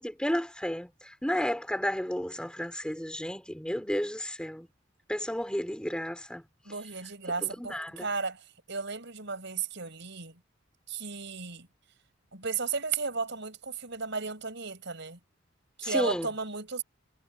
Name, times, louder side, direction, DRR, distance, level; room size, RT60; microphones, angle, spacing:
voice 1, 0.0-4.7 5.1-6.4 7.4-8.1 15.8-16.3, equal, 5° left, 3.9 m, -32 dB
voice 2, 6.6-10.4 10.9-11.7 12.3-15.2 15.8-16.8, right 5 dB, 60° right, 7.3 m, -34 dB
head